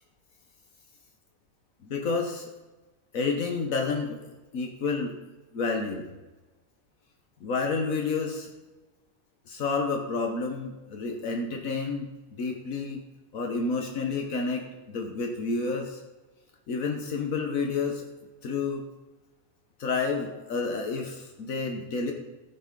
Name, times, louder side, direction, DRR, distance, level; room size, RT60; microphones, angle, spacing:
voice 1, 1.9-2.5 3.1-4.2 4.5-5.1 5.5-6.1 7.4-8.5 9.5-12.1 12.4-13.0 13.3-14.6 14.9-16.0 16.7-18.1 18.4-18.8 19.8-22.1, left 4 dB, 80° left, 2 dB, 1.5 m, -29 dB
14.0 x 5.9 x 5.2 m, 1.1 s
omnidirectional pair, 1.4 m